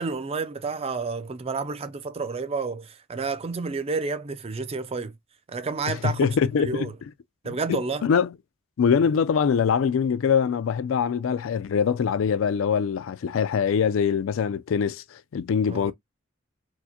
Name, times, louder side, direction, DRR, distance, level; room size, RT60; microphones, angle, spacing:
voice 1, 0.0-5.1 5.5-6.9 7.4-8.0 15.7-15.9, right 4 dB, 30° right, 0.4 m, -30 dB
voice 2, 5.9-6.9 7.7-8.3 8.8-15.9, left 6 dB, 70° left, 0.4 m, -23 dB
4.6 x 2.1 x 2.8 m
head